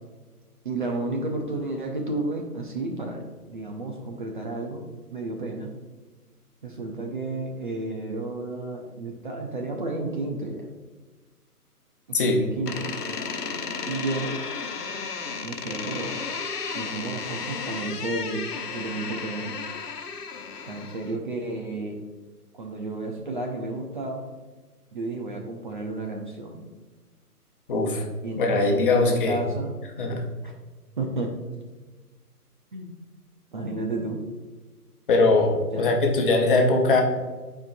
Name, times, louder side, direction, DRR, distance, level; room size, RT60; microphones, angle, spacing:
voice 1, 0.6-4.8 5.1-5.7 6.6-10.7 12.1-12.9 13.9-14.4 15.4-16.2 16.7-18.4 18.7-19.6 20.6-22.0 22.5-24.2 24.9-26.7 27.9-29.8 30.4-30.5 31.0-31.4 32.7-33.0 33.5-34.2 35.7-35.9, right 2 dB, 30° right, 2 dB, 0.7 m, -32 dB
Door, 12.7-21.2, left 5 dB, 80° left, 1.1 m, -33 dB
voice 2, 27.7-28.0 28.4-29.4 30.0-30.2 35.1-37.0, left 3 dB, 35° left, 1 dB, 1.1 m, -21 dB
11.5 x 4.6 x 2.6 m, 1.3 s
figure-of-eight pair, 150°, 47 cm